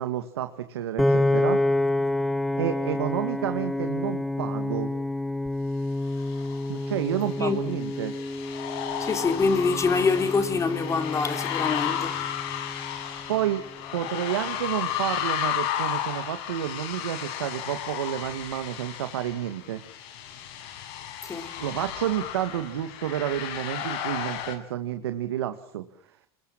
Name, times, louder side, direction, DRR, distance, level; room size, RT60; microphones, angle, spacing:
voice 1, 0.0-1.6 2.5-4.9 6.7-8.1 13.3-13.6 13.9-19.8 21.6-26.2, right 11 dB, 90° right, 2.0 m, -30 dB
Piano, 1.0-13.2, left 1 dB, ahead, 1.2 m, -28 dB
sound 1, 6.1-24.6, left 10 dB, 70° left, 6.6 m, -34 dB
voice 2, 9.0-12.2 21.2-21.5, left 4 dB, 25° left, 3.9 m, -25 dB
28.0 x 21.5 x 7.4 m
hypercardioid pair, 100°, 13 cm